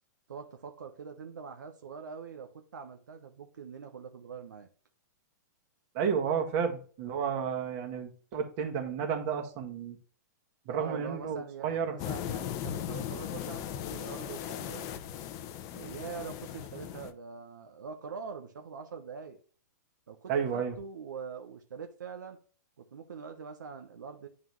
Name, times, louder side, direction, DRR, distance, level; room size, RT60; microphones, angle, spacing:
voice 1, 0.3-4.7 10.7-14.9 15.7-19.4 20.1-22.4 22.8-24.3, right 6 dB, 90° right, 1.0 m, -44 dB
voice 2, 5.9-10.0 10.6-11.9 20.3-20.7, right 7 dB, 45° right, 1.7 m, -31 dB
sound 1, 12.0-17.1, left 10 dB, 35° left, 0.7 m, -38 dB
9.6 x 3.9 x 3.1 m
hypercardioid pair, 135°, 10 cm